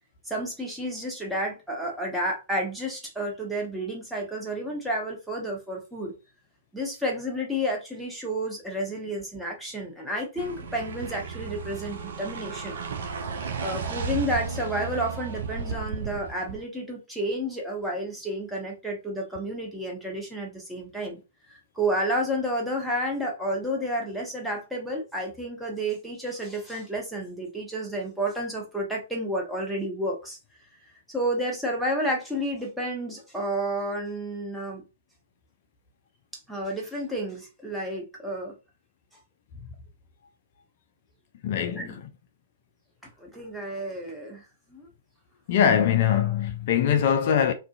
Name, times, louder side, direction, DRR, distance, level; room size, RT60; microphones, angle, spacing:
voice 1, 0.3-6.1 6.7-12.8 13.6-21.2 21.8-30.4 31.1-34.8 36.5-38.5 41.6-42.0 43.2-44.4 44.7-44.9, right 1 dB, ahead, 0.8 m, -31 dB
sound 1, 10.4-16.6, right 6 dB, 55° right, 0.4 m, -34 dB
voice 2, 41.4-42.1 45.5-47.5, left 8 dB, 45° left, 0.3 m, -22 dB
2.4 x 2.4 x 2.4 m
figure-of-eight pair, 110°, 0 cm